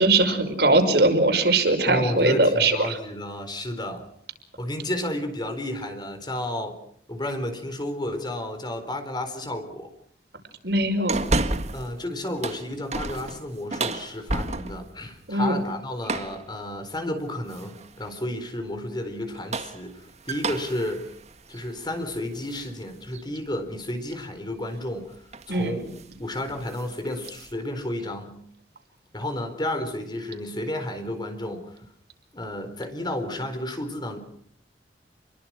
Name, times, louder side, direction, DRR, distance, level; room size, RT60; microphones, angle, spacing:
voice 1, 0.0-3.0 10.6-11.2 15.3-15.6 25.5-25.8, right 2 dB, 60° right, 5.5 m, -21 dB
voice 2, 1.9-4.1 4.6-6.8 7.1-9.9 11.7-21.1 21.5-28.4 29.1-31.8 32.3-34.2, left 1 dB, 25° left, 4.2 m, -32 dB
sound 1, 11.1-11.9 12.3-15.0 16.0-16.5 17.5-17.9 19.2-22.7 23.1-23.2 24.8-25.0 25.3-25.6 25.9-26.1 26.5-27.5, right 2 dB, 40° right, 1.7 m, -31 dB
29.5 x 22.5 x 6.2 m
head